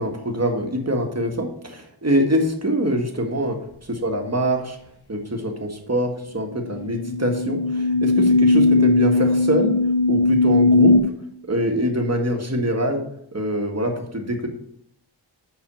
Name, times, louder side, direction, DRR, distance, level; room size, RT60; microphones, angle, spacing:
voice 1, 0.0-4.8 5.1-9.8 10.1-11.0 11.5-13.0 13.3-14.5, equal, 30° right, 3 dB, 1.6 m, -24 dB
sound 1, 6.6-11.0, left 3 dB, 50° left, 1.3 m, -18 dB
6.2 x 5.8 x 6.8 m, 0.72 s
wide cardioid pair, 55°, 48 cm